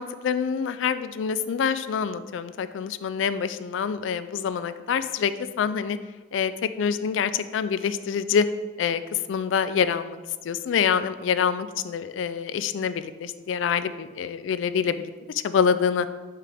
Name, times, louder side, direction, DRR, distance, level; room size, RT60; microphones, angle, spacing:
voice 1, 0.0-5.3 5.6-6.0 6.3-8.5 8.8-9.0 9.3-16.1, left 7 dB, 85° left, 13 dB, 0.3 m, -26 dB
5.8 x 4.9 x 3.5 m, 1.3 s
head